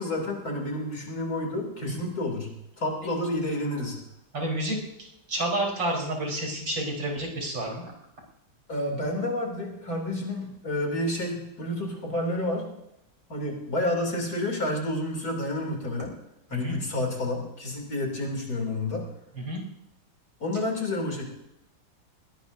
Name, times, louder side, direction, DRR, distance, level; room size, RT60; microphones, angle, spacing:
voice 1, 0.0-2.5 2.8-4.0 8.7-12.7 13.3-16.1 16.5-19.0 20.4-21.3, left 1 dB, 50° left, 1 dB, 3.6 m, -30 dB
voice 2, 4.3-4.8 5.3-7.8 16.5-16.8 19.3-19.6, right 1 dB, 75° right, -1 dB, 5.0 m, -29 dB
21.0 x 18.0 x 2.7 m, 0.84 s
omnidirectional pair, 2.1 m